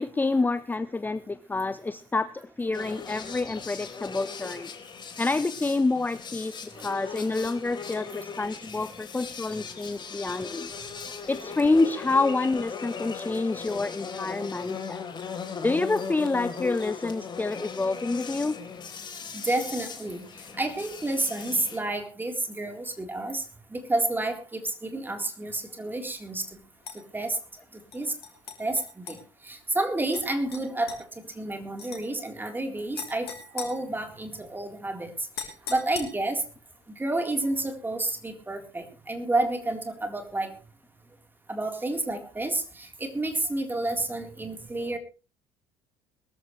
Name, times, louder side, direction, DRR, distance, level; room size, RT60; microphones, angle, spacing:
voice 1, 0.0-4.7 5.2-6.6 6.8-10.7 11.3-15.0 15.6-18.6, left 3 dB, 15° left, 14 dB, 0.9 m, -27 dB
sound 1, 2.7-21.8, left 6 dB, 35° left, 3.9 m, -38 dB
voice 2, 6.8-7.2 11.0-11.1 19.1-20.2 20.5-23.4 23.7-26.6 26.9-27.4 27.9-28.1 28.6-29.2 29.4-35.1 35.4-36.4 37.0-40.6 41.5-45.0, right 2 dB, 15° right, 5 dB, 3.9 m, -30 dB
sound 2, 26.8-27.0 27.9-29.2 30.1-30.2 30.5-31.0 31.8-32.0 33.0-34.4 35.3-36.4, left 7 dB, 75° left, 3.6 m, -40 dB
22.0 x 13.5 x 3.3 m, 0.35 s
figure-of-eight pair, 60°, 13 cm